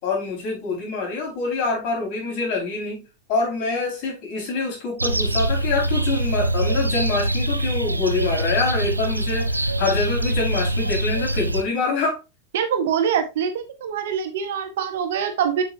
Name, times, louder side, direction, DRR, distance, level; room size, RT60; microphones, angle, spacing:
voice 1, 0.0-3.0 3.3-12.2, left 3 dB, 45° left, 5.0 m, -25 dB
sound 1, 5.0-11.6, right 1 dB, 85° right, 0.6 m, -24 dB
voice 2, 12.5-15.6, right 8 dB, 55° right, 1.4 m, -24 dB
8.0 x 6.9 x 2.8 m
figure-of-eight pair, 90°, 0 cm